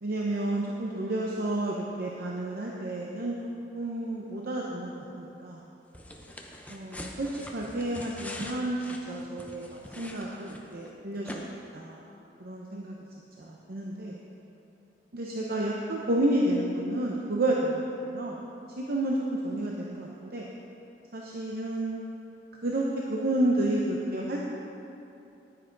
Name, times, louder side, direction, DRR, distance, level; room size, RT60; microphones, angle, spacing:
voice 1, 0.0-3.4 3.7-5.6 6.7-11.5 11.7-12.0 12.4-13.0 13.4-14.2 15.1-18.4 18.8-20.5 21.1-22.0 22.6-22.8 23.1-24.5, right 1 dB, 60° right, -2 dB, 0.8 m, -30 dB
sound 1, 5.9-10.9 11.2-11.4, left 1 dB, 10° left, 0.7 m, -43 dB
10.0 x 10.0 x 3.9 m, 2.8 s
head